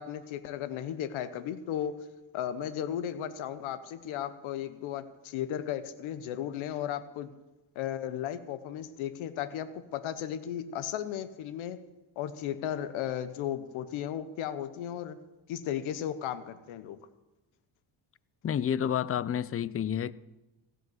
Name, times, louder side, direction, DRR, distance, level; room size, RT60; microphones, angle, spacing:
voice 1, 0.0-1.9 2.3-7.3 7.7-11.8 12.2-15.2 15.5-17.0, left 10 dB, 85° left, 1.0 m, -35 dB
voice 2, 18.4-20.1, left 9 dB, 30° left, 0.5 m, -29 dB
16.0 x 8.1 x 7.8 m
cardioid pair, 85°, 46 cm